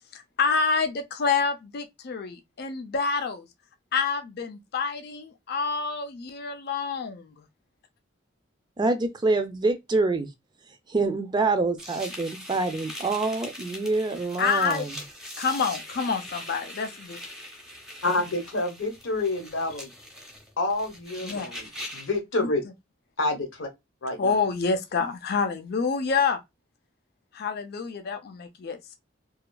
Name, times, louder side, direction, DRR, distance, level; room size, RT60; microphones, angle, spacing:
voice 1, 0.1-3.5 3.9-7.5 14.4-14.8 15.4-17.2 21.2-21.5 22.4-22.5 24.2-26.4 27.3-29.0, left 5 dB, 55° left, 0.5 m, -27 dB
voice 2, 8.8-10.3 10.9-15.0, right 3 dB, 25° right, 0.4 m, -26 dB
sound 1, 11.8-22.2, left 1 dB, 5° right, 0.8 m, -42 dB
voice 3, 18.0-19.9 20.6-21.6 21.9-22.6 23.2-23.7 24.0-24.4, left 2 dB, 85° left, 0.9 m, -28 dB
2.8 x 2.4 x 2.2 m
head